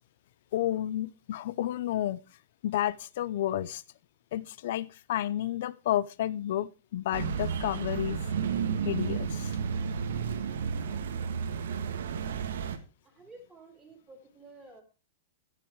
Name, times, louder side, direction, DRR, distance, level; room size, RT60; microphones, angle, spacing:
voice 1, 0.5-2.2 2.6-3.8 4.3-8.2 8.8-9.6 10.2-10.5, left 12 dB, 50° left, 0.5 m, -31 dB
sound 1, 7.1-12.8, right 6 dB, 85° right, 1.7 m, -32 dB
voice 2, 13.0-14.8, right 2 dB, 10° right, 3.3 m, -53 dB
13.0 x 9.5 x 4.7 m
supercardioid pair, 175°, 0 cm